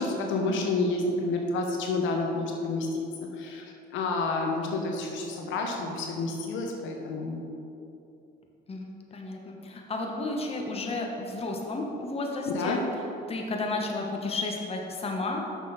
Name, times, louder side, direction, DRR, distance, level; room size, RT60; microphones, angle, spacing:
voice 1, 0.0-3.0 3.4-3.6 3.9-7.4 12.5-12.8, left 3 dB, 75° left, 1 dB, 1.1 m, -29 dB
voice 2, 8.7-12.8 13.3-15.4, left 2 dB, 30° left, 1 dB, 1.2 m, -32 dB
6.6 x 6.4 x 5.0 m, 2.7 s
supercardioid pair, 90°, 20 cm